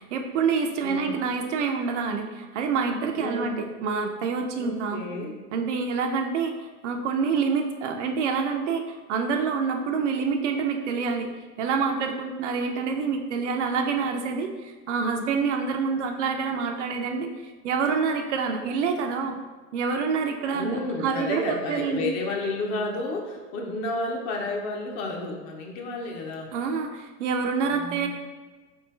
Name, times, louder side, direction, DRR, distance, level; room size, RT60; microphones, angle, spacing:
voice 1, 0.0-5.0 5.5-11.3 11.6-19.4 19.7-22.1 26.5-28.1, right 5 dB, 50° right, 4 dB, 0.5 m, -27 dB
voice 2, 0.8-1.1 3.2-3.6 4.6-5.3 20.5-26.5 27.7-28.1, left 2 dB, 30° left, 1 dB, 0.7 m, -31 dB
4.1 x 3.3 x 3.1 m, 1.3 s
hypercardioid pair, 100°, 48 cm